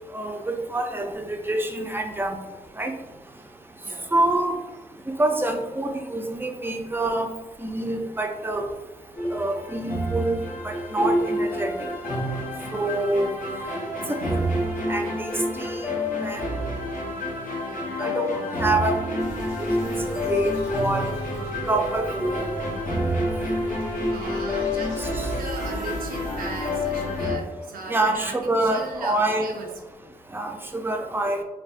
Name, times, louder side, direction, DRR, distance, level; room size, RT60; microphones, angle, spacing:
voice 1, 0.1-1.1 1.5-2.4 2.8-2.9 4.1-4.6 5.2-7.3 7.6-8.6 9.3-10.4 10.6-11.7 12.7-13.3 14.1-14.2 14.9-15.7 16.2-16.4 18.0-18.9 19.8-20.0 20.3-21.1 21.7-22.3 27.9-29.5 30.3-31.4, right 2 dB, 15° right, 4 dB, 0.5 m, -26 dB
voice 2, 3.8-4.1 17.6-18.0 23.4-29.8, right 4 dB, 80° right, 1 dB, 0.4 m, -38 dB
sound 1, 9.2-27.4, left 1 dB, 60° left, 1.1 m, -28 dB
sound 2, 17.8-27.4, left 2 dB, 75° left, 0.5 m, -37 dB
sound 3, 19.2-27.3, left 1 dB, 20° left, 1.1 m, -37 dB
3.3 x 2.1 x 2.5 m, 1.1 s
supercardioid pair, 45°, 15 cm